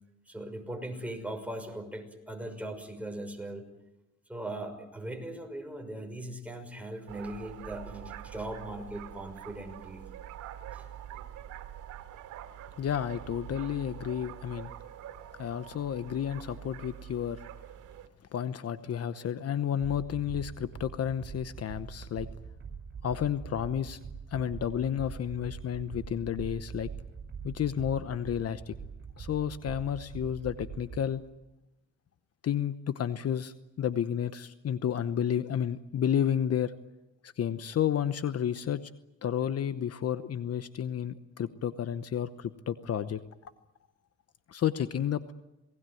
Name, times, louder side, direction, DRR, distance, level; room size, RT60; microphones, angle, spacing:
voice 1, 0.3-3.7 4.3-10.1 10.7-10.9, right 1 dB, 5° right, 4 dB, 6.0 m, -39 dB
sound 1, 7.1-18.1, right 11 dB, 85° right, 2.7 m, -45 dB
voice 2, 12.8-14.7 15.4-17.4 18.3-22.3 23.0-24.0 24.3-26.9 27.4-28.8 29.2-31.2 32.4-36.7 37.2-38.8 39.2-43.5 44.5-45.3, left 9 dB, 55° left, 12 dB, 1.0 m, -31 dB
sound 2, 19.8-31.0, right 6 dB, 40° right, 7.2 m, -43 dB
28.0 x 19.5 x 9.3 m, 0.97 s
cardioid pair, 90°, 30 cm